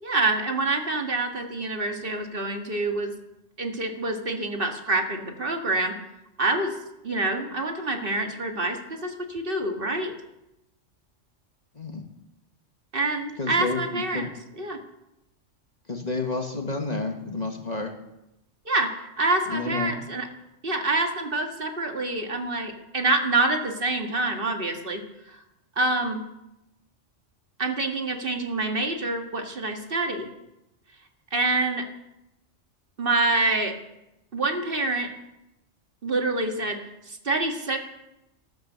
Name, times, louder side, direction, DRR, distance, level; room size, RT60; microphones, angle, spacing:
voice 1, 0.0-3.1 3.6-5.9 6.4-6.8 7.0-10.2 12.9-14.3 14.6-14.8 18.7-20.3 20.6-25.4 25.8-26.2 27.6-30.3 31.3-31.9 33.0-33.8 34.3-35.1 36.0-36.8 37.1-37.8, right 2 dB, 45° right, 4 dB, 1.9 m, -26 dB
voice 2, 13.4-14.3 15.9-17.9 19.5-19.9, left 3 dB, 35° left, 3 dB, 1.6 m, -30 dB
13.5 x 12.5 x 6.8 m, 0.90 s
omnidirectional pair, 1.3 m